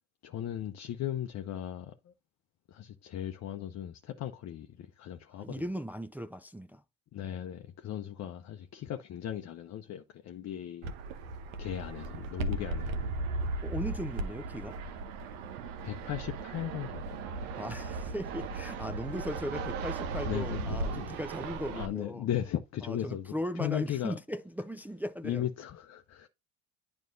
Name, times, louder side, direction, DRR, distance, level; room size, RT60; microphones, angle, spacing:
voice 1, 0.2-2.1 2.7-5.6 7.1-10.9 11.6-13.2 15.8-17.3 20.2-21.2 21.7-24.2 25.2-26.3, left 11 dB, 45° left, 0.8 m, -37 dB
voice 2, 5.4-6.8 13.6-14.8 17.6-22.3 22.8-25.5, equal, 5° right, 0.4 m, -38 dB
Fixed-wing aircraft airplane, 10.8-21.9, right 3 dB, 80° right, 1.0 m, -36 dB
9.2 x 5.1 x 2.6 m
hypercardioid pair, 70°, 38 cm